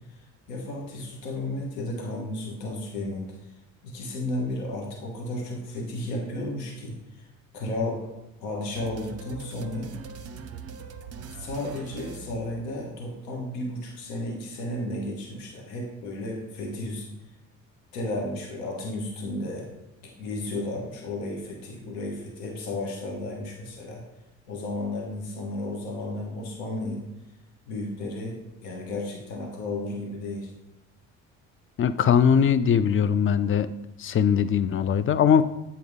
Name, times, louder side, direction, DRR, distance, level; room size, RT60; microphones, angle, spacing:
voice 1, 0.0-3.4 3.8-7.3 7.5-8.1 8.4-9.9 11.3-17.1 17.9-19.7 20.0-24.0 24.5-27.0 27.7-30.5, left 1 dB, 80° left, 0 dB, 1.4 m, -33 dB
sound 1, 8.8-13.1, right 6 dB, 35° right, 0.6 m, -42 dB
voice 2, 31.8-33.7 34.0-35.4, left 7 dB, 30° left, 14 dB, 0.4 m, -21 dB
7.8 x 4.3 x 3.6 m, 0.94 s
hypercardioid pair, 50°, 41 cm